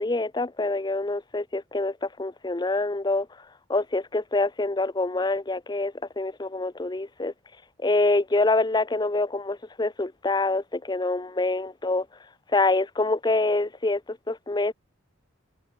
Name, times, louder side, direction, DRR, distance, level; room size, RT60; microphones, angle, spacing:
voice 1, 0.0-7.3 7.8-12.1 12.5-14.7, left 2 dB, 20° left, 0.5 m, -26 dB
head